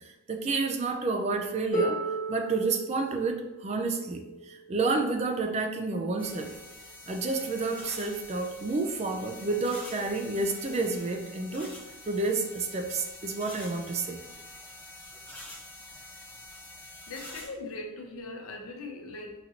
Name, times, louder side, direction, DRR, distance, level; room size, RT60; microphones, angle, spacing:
voice 1, 0.0-6.5 7.1-11.7 12.0-14.2, right 3 dB, 30° right, 5 dB, 0.4 m, -30 dB
Harp, 1.7-7.5 8.6-8.7, right 1 dB, 40° left, 1.1 m, -36 dB
sound 1, 6.2-17.5, left 1 dB, 10° left, 0.8 m, -46 dB
voice 2, 17.1-19.3, left 2 dB, 80° left, 1 dB, 0.7 m, -40 dB
5.8 x 2.6 x 2.8 m, 1.0 s
head